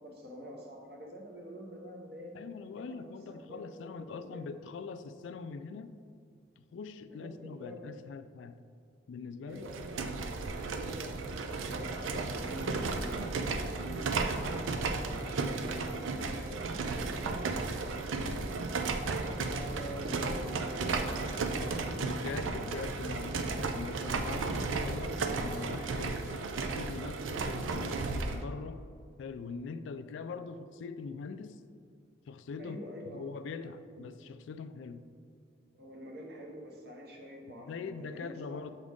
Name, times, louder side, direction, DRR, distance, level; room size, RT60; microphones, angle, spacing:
voice 1, 0.0-2.4 2.8-3.0 3.3-4.5 7.2-7.8 9.5-10.0 10.4-14.2 14.6-17.6 17.9-18.5 18.9-22.1 32.6-33.2 34.0-34.1 35.7-38.6, equal, 55° right, 1 dB, 0.8 m, -46 dB
voice 2, 2.3-5.9 6.6-8.7 9.1-9.9 21.5-28.9 29.2-31.6 32.3-32.8 33.1-35.1 37.6-38.7, left 5 dB, 75° left, 11 dB, 0.3 m, -42 dB
sound 1, 9.6-28.4, right 3 dB, 90° right, 0.4 m, -34 dB
7.2 x 3.8 x 3.6 m, 2.3 s
head